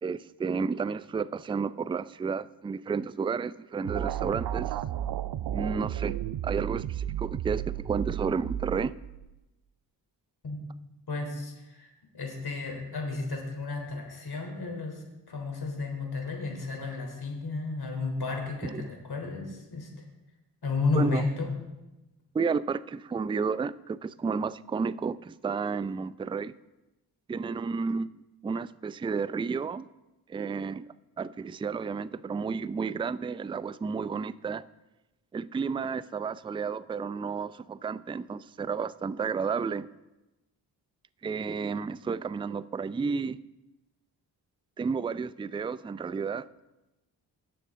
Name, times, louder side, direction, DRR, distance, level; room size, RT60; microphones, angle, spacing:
voice 1, 0.0-4.8 5.5-6.2 6.4-9.0 18.6-18.9 20.9-21.3 22.3-26.5 27.3-28.2 28.4-29.9 30.3-30.9 31.2-34.6 35.3-39.9 41.2-43.4 44.8-46.5, right 5 dB, 10° right, 0.3 m, -32 dB
sound 1, 3.8-9.3, right 11 dB, 55° right, 0.6 m, -33 dB
voice 2, 11.1-19.9 20.6-21.5, left 3 dB, 55° left, 3.5 m, -32 dB
18.0 x 6.9 x 3.7 m
hypercardioid pair, 40°, 46 cm